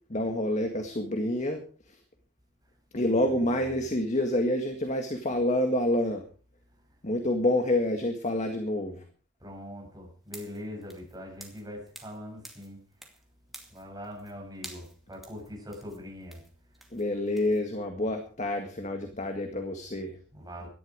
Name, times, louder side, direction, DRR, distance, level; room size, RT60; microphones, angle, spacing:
voice 1, 0.1-1.6 2.9-6.2 7.0-9.0 16.9-20.1, left 1 dB, 35° left, 1.8 m, -28 dB
voice 2, 3.0-3.6 9.4-12.8 13.7-17.0 20.3-20.7, equal, 15° right, 7.8 m, -42 dB
sound 1, 10.3-12.2 12.4-13.2 13.5-14.3 14.6-17.6, right 1 dB, ahead, 2.4 m, -49 dB
17.5 x 12.5 x 5.0 m
head